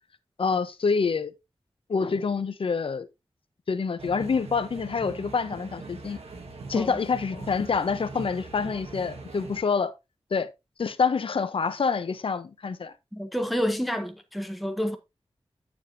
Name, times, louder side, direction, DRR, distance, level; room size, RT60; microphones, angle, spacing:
voice 1, 0.4-1.3 1.9-3.1 3.7-6.2 6.7-9.9 10.3-10.5 10.8-12.9, left 5 dB, 65° left, 0.7 m, -27 dB
sound 1, 4.0-9.6, right 3 dB, 90° right, 1.5 m, -41 dB
voice 2, 13.1-15.0, equal, ahead, 0.8 m, -29 dB
8.6 x 7.1 x 2.7 m
wide cardioid pair, 110°, 10 cm